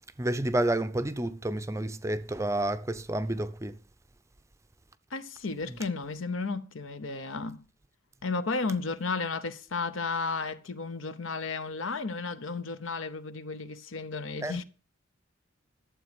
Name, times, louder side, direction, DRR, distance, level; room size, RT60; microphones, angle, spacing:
voice 1, 0.2-3.8 14.4-14.6, right 1 dB, 15° right, 0.5 m, -30 dB
voice 2, 5.1-7.6 8.2-14.6, left 4 dB, 75° left, 0.9 m, -33 dB
12.5 x 7.5 x 5.1 m
head